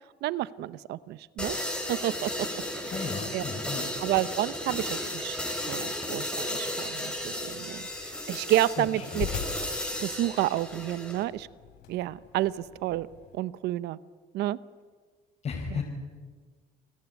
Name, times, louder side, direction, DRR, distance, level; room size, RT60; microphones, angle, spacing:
voice 1, 0.2-1.5 1.9-2.3 3.3-3.4 4.0-5.4 5.7-9.3 10.0-11.5 11.9-12.5 12.8-13.1 13.3-14.0 14.3-14.6 15.7-15.8, right 14 dB, 80° right, 16 dB, 0.8 m, -30 dB
sound 1, 1.4-11.2, left 1 dB, 5° left, 5.2 m, -34 dB
voice 2, 2.9-3.9 8.8-9.2 15.4-15.8, left 5 dB, 45° left, -2 dB, 5.0 m, -34 dB
sound 2, 7.1-13.4, left 8 dB, 85° left, 5.1 m, -42 dB
29.5 x 19.5 x 9.6 m, 1.5 s
cardioid pair, 110°, 17 cm